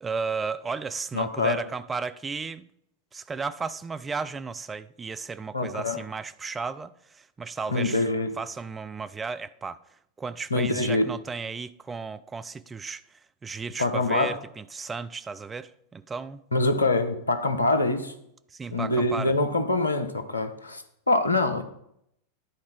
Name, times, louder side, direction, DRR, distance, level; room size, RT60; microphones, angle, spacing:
voice 1, 0.0-2.7 3.1-8.1 8.4-9.8 10.2-16.4 18.5-19.4, right 4 dB, 15° right, 0.4 m, -34 dB
voice 2, 1.1-1.6 5.5-6.0 7.7-8.3 10.5-11.1 13.8-14.4 16.5-18.1 18.7-21.6, left 2 dB, 80° left, 0.9 m, -25 dB
10.5 x 4.2 x 5.8 m
figure-of-eight pair, 90°, 0 cm